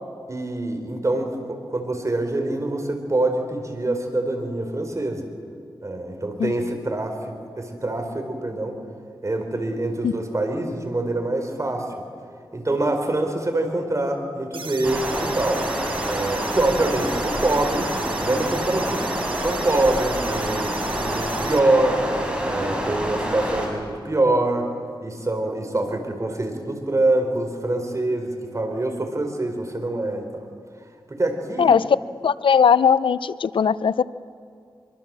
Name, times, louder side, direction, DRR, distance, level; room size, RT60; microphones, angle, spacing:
voice 1, 0.3-5.3 5.8-8.8 9.2-11.9 12.5-15.6 16.1-19.0 19.4-22.0 22.4-24.7 25.0-30.5 31.1-31.7, right 2 dB, 35° right, 5 dB, 4.2 m, -25 dB
sound 1, 14.5-21.6, right 5 dB, 85° right, 1.3 m, -36 dB
Stream, 14.8-23.7, equal, 10° right, 6.5 m, -27 dB
voice 2, 31.6-32.0 32.2-34.0, left 7 dB, 85° left, 17 dB, 0.6 m, -18 dB
25.0 x 23.5 x 7.6 m, 2.3 s
wide cardioid pair, 65°, 8 cm